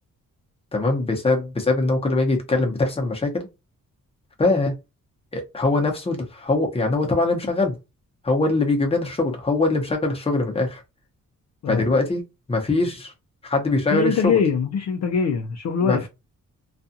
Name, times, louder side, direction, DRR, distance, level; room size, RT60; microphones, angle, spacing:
voice 1, 0.7-3.5 4.4-4.7 5.3-7.8 8.2-10.8 11.7-12.2 12.5-13.1 13.4-14.3 15.8-16.0, left 2 dB, 20° left, 0.8 m, -22 dB
voice 2, 13.9-16.1, left 6 dB, 55° left, 0.5 m, -22 dB
2.4 x 2.3 x 2.6 m
wide cardioid pair, 145°, 33 cm